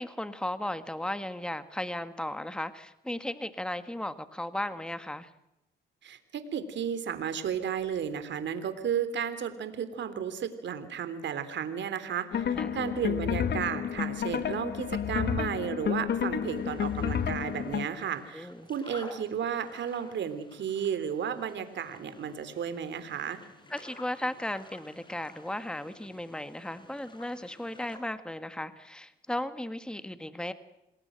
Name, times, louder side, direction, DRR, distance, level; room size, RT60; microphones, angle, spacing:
voice 1, 0.0-5.3 12.5-12.8 18.3-18.7 23.7-30.5, left 1 dB, 5° left, 11 dB, 1.7 m, -36 dB
voice 2, 6.0-12.5 12.7-23.4, right 8 dB, 65° right, 11 dB, 3.5 m, -33 dB
sound 1, 12.3-17.8, left 8 dB, 60° left, 1.8 m, -30 dB
sound 2, 16.5-28.0, left 1 dB, 25° left, 6.6 m, -52 dB
28.0 x 20.0 x 7.8 m, 0.90 s
cardioid pair, 90°, 20 cm